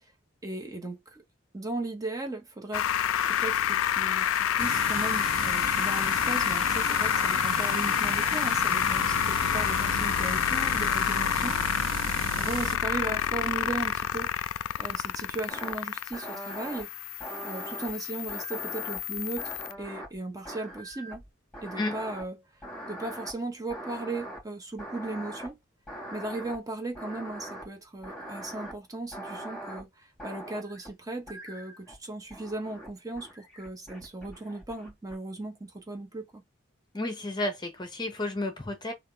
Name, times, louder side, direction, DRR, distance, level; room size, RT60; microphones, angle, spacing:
voice 1, 0.4-1.2 1.5-2.9 3.2-11.6 12.4-14.3 14.8-16.9 17.4-21.2 21.6-22.4 22.9-25.6 26.1-36.4, right 2 dB, 15° right, 0.7 m, -37 dB
sound 1, 2.7-19.7, left 10 dB, 85° left, 0.3 m, -28 dB
sound 2, 4.6-12.8, right 6 dB, 75° right, 0.6 m, -36 dB
sound 3, 15.5-15.7 16.1-16.8 17.2-17.9 18.3-20.2 20.4-21.3 21.5-22.2 22.6-23.3 23.7-24.4 24.8-25.5 25.9-26.6 26.9-27.6 28.0-28.7 29.1-29.8 30.2-30.9 31.3-32.0 32.3-32.9 33.1-35.1, right 1 dB, 5° left, 2.0 m, -41 dB
voice 2, 36.9-38.9, left 2 dB, 20° left, 0.7 m, -32 dB
3.5 x 2.4 x 3.6 m
head